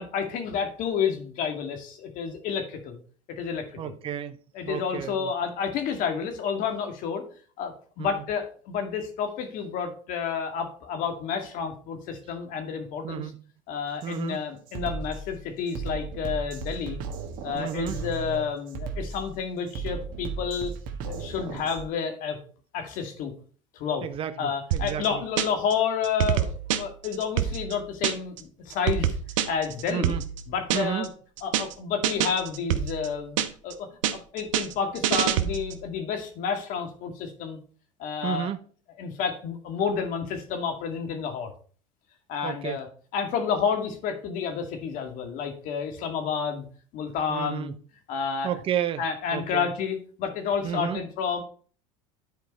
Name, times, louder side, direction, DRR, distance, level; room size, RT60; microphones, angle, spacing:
voice 1, 0.0-3.0 3.3-3.9 4.5-7.2 7.6-13.3 13.7-17.0 17.4-20.7 21.0-22.4 22.7-23.3 23.7-24.1 24.4-29.2 29.5-30.2 30.5-31.1 31.4-33.4 33.6-37.6 38.0-38.5 39.0-41.5 42.3-42.9 43.1-46.7 46.9-47.7 48.1-48.5 49.0-51.4, left 6 dB, 55° left, 2.1 m, -30 dB
voice 2, 3.8-4.4 4.7-5.3 8.0-8.2 13.0-13.4 14.0-14.4 17.6-18.0 24.0-25.2 29.9-30.2 30.7-31.1 38.2-38.6 42.4-42.8 47.3-47.8 48.4-49.0 49.3-49.7 50.6-51.0, right 10 dB, 35° right, 0.7 m, -32 dB
Drum kit, 14.0-14.2 14.7-21.9, right 5 dB, 55° right, 1.5 m, -36 dB
sound 1, 24.7-25.7 26.0-28.4 28.7-31.1 31.4-31.7 32.0-33.7 34.0-35.8, right 10 dB, 80° right, 0.9 m, -27 dB
10.5 x 4.6 x 4.2 m
hypercardioid pair, 95°, 16 cm